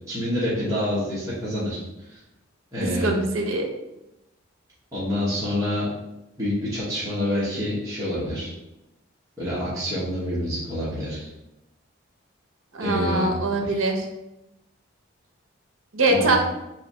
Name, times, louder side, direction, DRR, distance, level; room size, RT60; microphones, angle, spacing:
voice 1, 0.1-1.8 2.1-2.2 2.7-3.1 4.9-5.9 6.4-8.5 9.4-11.3 12.8-13.3 16.1-16.4, left 1 dB, 15° right, -11 dB, 0.9 m, -27 dB
voice 2, 2.8-3.7 12.7-14.1 15.9-16.4, right 2 dB, 70° right, 3 dB, 0.6 m, -23 dB
3.2 x 2.5 x 4.0 m, 0.91 s
head